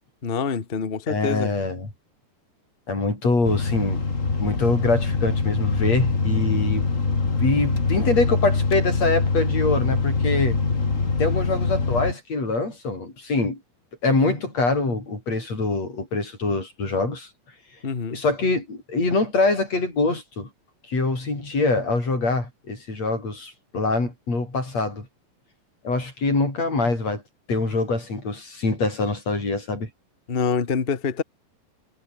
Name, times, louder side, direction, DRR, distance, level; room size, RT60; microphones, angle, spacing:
voice 1, 0.2-1.5 17.8-18.2 30.3-31.2, left 5 dB, 80° left, 0.5 m, -26 dB
voice 2, 1.1-1.9 2.9-4.0 4.4-6.9 7.4-10.6 11.2-13.6 14.0-17.3 18.1-20.5 20.9-25.1 25.8-27.2 27.5-29.9, left 3 dB, 50° left, 9.1 m, -24 dB
sound 1, 3.4-12.1, left 4 dB, 25° left, 2.4 m, -23 dB
omnidirectional pair, 4.0 m